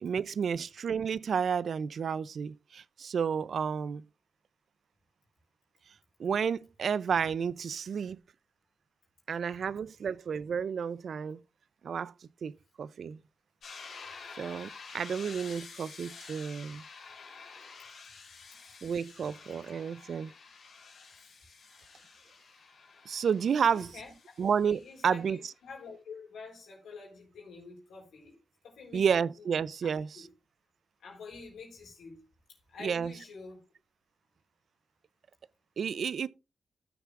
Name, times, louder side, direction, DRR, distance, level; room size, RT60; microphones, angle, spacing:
voice 1, 0.0-4.0 6.2-8.2 9.3-11.4 11.8-12.1 12.4-12.5 12.8-13.2 14.4-16.8 18.8-20.3 23.1-23.9 24.4-25.4 28.9-30.3 32.8-33.1 35.8-36.3, right 7 dB, 70° right, 0.4 m, -31 dB
sound 1, 13.6-25.3, left 5 dB, 70° left, 3.5 m, -50 dB
voice 2, 23.7-24.4 24.6-29.1 29.4-29.5 30.1-30.3 31.0-33.6, left 4 dB, 85° left, 3.9 m, -48 dB
16.0 x 6.8 x 2.5 m
cardioid pair, 75°, 0 cm